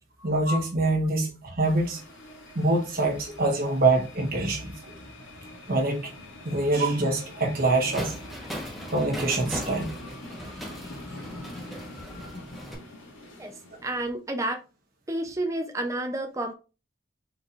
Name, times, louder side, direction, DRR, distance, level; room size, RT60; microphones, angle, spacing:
voice 1, 0.2-2.0 2.5-4.8 5.7-6.1 6.4-8.1 8.9-9.9, right 2 dB, 50° right, 1.2 m, -25 dB
sound 1, 1.6-14.0, left 2 dB, 90° left, 2.0 m, -44 dB
sound 2, 7.9-12.8, equal, ahead, 1.1 m, -39 dB
voice 2, 13.4-14.6 15.1-16.5, right 1 dB, 15° right, 0.6 m, -31 dB
4.6 x 4.2 x 2.5 m
head